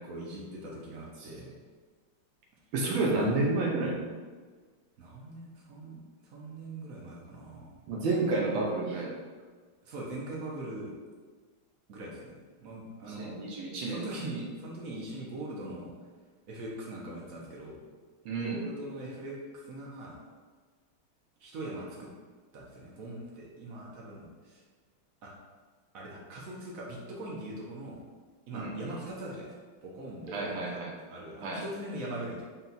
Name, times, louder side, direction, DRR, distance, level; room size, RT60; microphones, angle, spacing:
voice 1, 0.1-1.6 3.3-3.4 5.0-7.8 9.8-10.9 11.9-13.4 13.8-15.9 16.5-17.8 18.4-20.2 21.4-22.1 22.5-24.6 25.2-25.3 25.9-28.0 28.5-29.5 29.8-30.8 31.1-32.4, right 1 dB, 65° right, -3 dB, 0.8 m, -41 dB
voice 2, 2.7-4.0 7.9-9.1 13.1-14.0 14.3-14.4 18.2-18.6 28.5-29.0 30.3-30.9 31.4-31.6, right 2 dB, 80° right, -2 dB, 1.5 m, -30 dB
4.2 x 2.3 x 3.9 m, 1.5 s
omnidirectional pair, 2.2 m